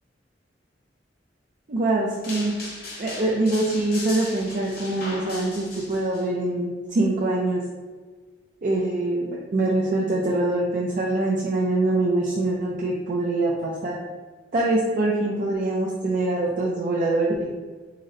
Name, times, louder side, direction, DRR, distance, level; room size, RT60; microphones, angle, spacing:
voice 1, 1.7-2.5 3.0-7.6 8.6-14.0 14.5-17.5, right 2 dB, 45° right, -4 dB, 0.4 m, -24 dB
sound 1, 2.2-6.2, left 2 dB, 55° left, 1.2 m, -37 dB
3.9 x 2.1 x 3.8 m, 1.4 s
head